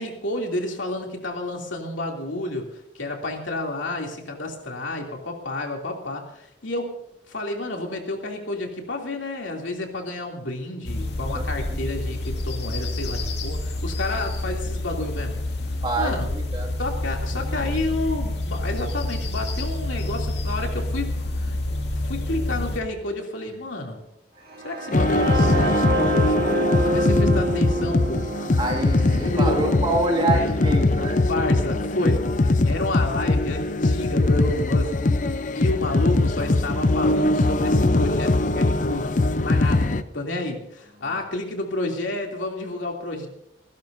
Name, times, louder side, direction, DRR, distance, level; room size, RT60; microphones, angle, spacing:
voice 1, 0.0-15.4 16.0-16.3 16.8-21.6 22.0-24.1 24.6-25.8 26.8-28.3 29.2-29.6 30.3-30.5 31.3-35.0 35.3-43.3, left 2 dB, 90° left, 1 dB, 2.9 m, -30 dB
sound 1, 10.8-22.8, left 1 dB, 60° left, 2.2 m, -28 dB
voice 2, 15.8-16.7 28.6-31.2 35.5-35.6 41.0-41.2, right 2 dB, 25° right, 1 dB, 2.3 m, -26 dB
sound 2, 24.5-32.4, right 2 dB, 55° right, 2.8 m, -28 dB
sound 3, 24.9-40.0, left 2 dB, 40° left, 0.6 m, -21 dB
29.5 x 11.5 x 2.7 m, 0.81 s
head